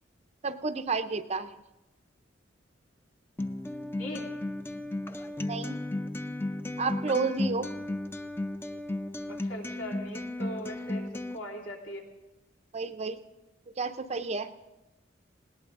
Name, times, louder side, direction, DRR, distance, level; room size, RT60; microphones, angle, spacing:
voice 1, 0.4-1.5 5.5-5.8 6.8-7.7 12.7-13.2 13.8-14.5, right 4 dB, 35° right, 10 dB, 0.6 m, -31 dB
Acoustic guitar, 3.4-11.4, left 1 dB, 10° left, 0.5 m, -34 dB
voice 2, 4.0-4.3 9.3-11.0 11.3-12.0, equal, 75° left, -1 dB, 3.1 m, -40 dB
20.0 x 18.0 x 3.7 m, 1.0 s
head